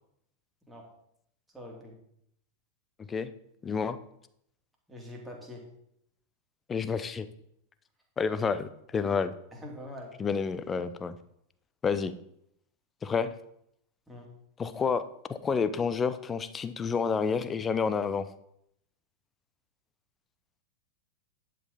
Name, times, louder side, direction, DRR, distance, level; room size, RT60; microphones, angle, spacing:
voice 1, 1.5-2.0 4.9-5.7 9.5-10.2 14.1-14.3, left 1 dB, 5° right, -2 dB, 3.0 m, -44 dB
voice 2, 3.6-4.0 6.7-7.3 8.2-9.3 10.2-11.1 11.8-12.1 13.0-13.3 14.6-15.0 15.3-18.3, left 5 dB, 20° left, 13 dB, 0.7 m, -29 dB
11.0 x 7.8 x 4.3 m, 0.73 s
figure-of-eight pair, 90°, 0 cm